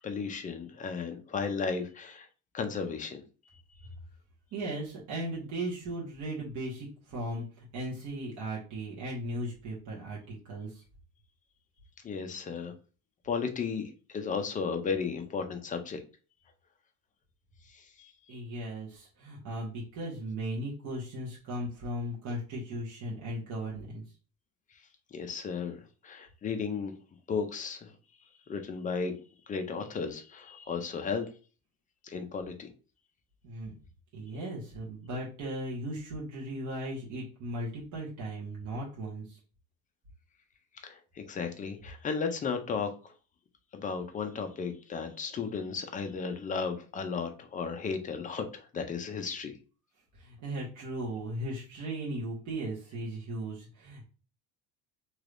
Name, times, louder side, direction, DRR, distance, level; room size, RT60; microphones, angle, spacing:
voice 1, 0.0-2.3 2.5-3.2 3.5-3.6 12.0-12.7 13.2-16.0 17.7-18.4 25.1-26.9 27.3-28.0 28.5-29.2 29.5-31.3 32.0-32.7 40.7-43.1 43.7-49.6, left 5 dB, 20° left, 6 dB, 0.4 m, -34 dB
voice 2, 4.5-10.8 18.3-24.0 33.4-33.7 34.1-39.4 50.2-54.1, right 1 dB, 50° right, -5 dB, 1.3 m, -37 dB
3.2 x 3.0 x 2.4 m, 0.36 s
cardioid pair, 150°, 37 cm